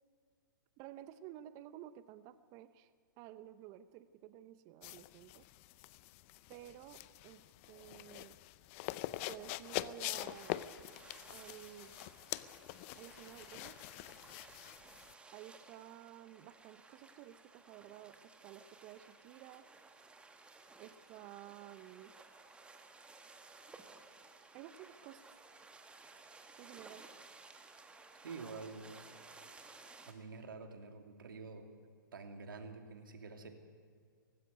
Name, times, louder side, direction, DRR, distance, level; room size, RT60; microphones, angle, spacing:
voice 1, 0.8-2.9 3.2-5.5 6.5-8.4 9.3-10.7 11.3-11.9 13.0-13.8 15.3-19.7 20.8-22.2 24.5-25.4 26.6-27.1, right 12 dB, 35° right, 14 dB, 0.7 m, -53 dB
sound 1, 4.8-15.1, left 17 dB, 40° left, 0.6 m, -44 dB
sound 2, 10.2-30.1, right 3 dB, 10° right, 1.4 m, -58 dB
voice 2, 28.2-28.9 30.1-31.7 32.1-33.5, right 4 dB, 75° right, 5 dB, 2.6 m, -48 dB
18.5 x 16.0 x 9.4 m, 2.1 s
hypercardioid pair, 120°, 11 cm